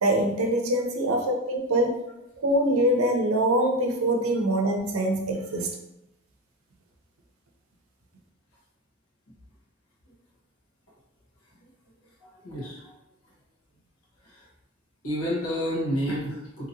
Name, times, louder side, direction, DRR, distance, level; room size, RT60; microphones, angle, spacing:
voice 1, 0.0-1.9 2.4-5.8, right 1 dB, 85° right, 2 dB, 0.6 m, -24 dB
voice 2, 12.0-13.0 13.2-13.3 14.2-14.5 15.0-16.7, equal, 75° left, -5 dB, 1.1 m, -31 dB
2.8 x 2.8 x 2.6 m, 0.86 s
head